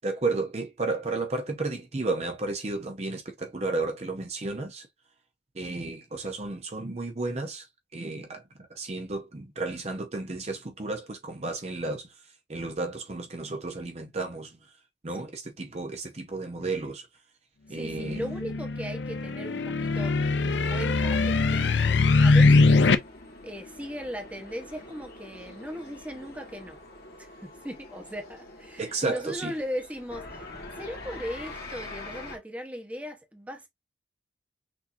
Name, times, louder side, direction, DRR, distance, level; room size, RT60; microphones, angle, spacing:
voice 1, 0.0-4.9 5.5-7.7 7.9-8.4 8.7-12.2 12.5-14.6 15.0-17.1 17.7-18.2 28.8-29.5, right 3 dB, 35° right, 0.7 m, -32 dB
voice 2, 17.7-22.9 23.4-26.8 27.2-30.5 30.8-33.7, equal, 10° right, 1.0 m, -38 dB
sound 1, 18.0-23.0, left 3 dB, 75° left, 0.6 m, -22 dB
sound 2, 20.5-32.4, left 2 dB, 55° left, 1.7 m, -45 dB
6.1 x 2.8 x 2.6 m
head